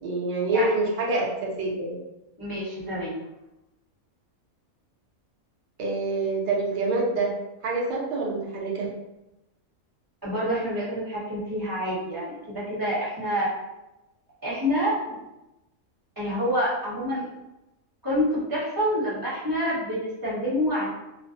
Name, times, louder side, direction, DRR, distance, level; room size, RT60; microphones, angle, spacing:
voice 1, 0.0-1.9 5.8-7.3 7.6-8.9, right 2 dB, 75° right, -3 dB, 0.4 m, -26 dB
voice 2, 2.4-3.1 10.2-13.5 14.4-15.2 16.2-17.3 18.0-20.9, equal, 20° right, -10 dB, 0.8 m, -27 dB
2.4 x 2.0 x 2.7 m, 0.95 s
omnidirectional pair, 1.5 m